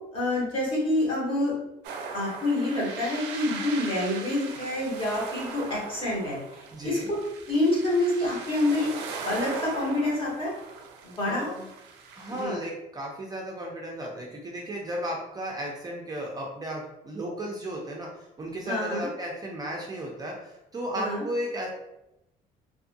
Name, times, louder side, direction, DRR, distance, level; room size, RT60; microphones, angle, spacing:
voice 1, 0.1-1.5 2.1-7.2 7.5-8.9 9.2-10.5 11.0-11.5 12.4-12.6 18.7-19.1 20.9-21.2, left 1 dB, 30° left, -6 dB, 1.4 m, -27 dB
sound 1, 1.8-12.4, right 5 dB, 90° right, 0.4 m, -39 dB
voice 2, 6.7-7.1 11.3-11.7 12.2-21.7, equal, 20° right, -2 dB, 0.4 m, -34 dB
2.6 x 2.4 x 2.6 m, 0.90 s
cardioid pair, 110°, 17 cm